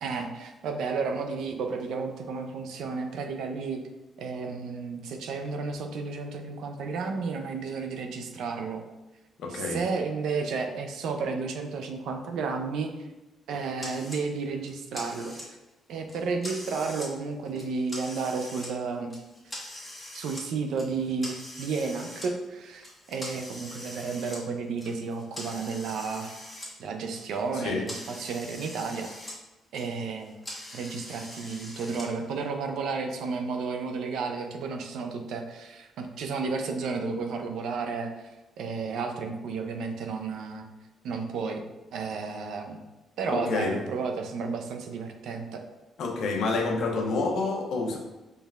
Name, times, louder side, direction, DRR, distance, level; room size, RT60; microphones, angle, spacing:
voice 1, 0.0-3.8 4.2-8.8 9.5-13.1 13.5-15.6 15.9-19.1 20.1-26.4 26.8-29.1 29.7-30.4 30.7-38.3 38.6-40.7 41.0-41.6 41.9-42.8 43.2-45.6, right 4 dB, 80° right, 5 dB, 0.4 m, -32 dB
voice 2, 9.4-9.8 27.5-27.9 43.3-43.8 46.0-48.0, left 3 dB, 70° left, 2 dB, 0.7 m, -28 dB
sound 1, 13.8-14.2 14.6-15.7 16.1-17.1 17.5-18.7 19.1-20.5 20.8-22.3 22.8-26.7 27.0-29.4 29.6-32.1, left 1 dB, 15° left, 1.3 m, -42 dB
4.5 x 3.2 x 2.3 m, 1.1 s
cardioid pair, 90°, 0 cm